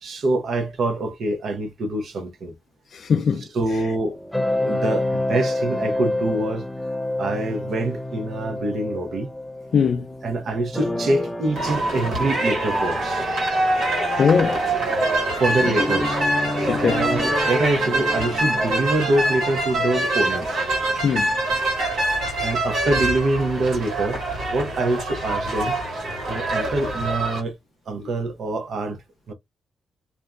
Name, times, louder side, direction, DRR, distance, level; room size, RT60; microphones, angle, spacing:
voice 1, 0.0-2.5 3.5-4.2 4.6-6.7 7.2-9.3 10.2-13.3 15.4-16.2 16.8-20.7 22.4-24.2 24.5-25.8 26.3-27.5 27.9-29.0 29.3-29.4, right 2 dB, 70° right, 0.7 m, -25 dB
voice 2, 2.9-3.4 9.7-10.1 14.2-14.6 16.7-17.0 21.0-21.3, left 6 dB, 65° left, 0.4 m, -20 dB
sound 1, 3.6-18.7, left 1 dB, 5° left, 0.5 m, -29 dB
sound 2, 11.6-27.4, right 1 dB, 85° right, 1.4 m, -24 dB
2.5 x 2.1 x 2.3 m
cardioid pair, 75°, 0 cm